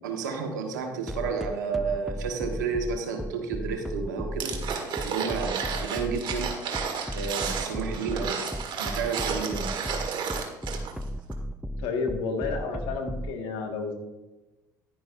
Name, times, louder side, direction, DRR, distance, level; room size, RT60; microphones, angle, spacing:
voice 1, 0.0-4.6 5.0-6.6 7.1-8.4 8.8-9.8, right 5 dB, 90° right, 4 dB, 1.4 m, -31 dB
sound 1, 1.1-13.3, equal, ahead, 0.5 m, -34 dB
sound 2, 4.4-11.0 11.3-11.4, right 6 dB, 55° right, 1.7 m, -32 dB
voice 2, 11.8-13.9, left 4 dB, 70° left, 3 dB, 1.8 m, -31 dB
11.0 x 10.0 x 2.6 m, 1.0 s
hypercardioid pair, 60°, 9 cm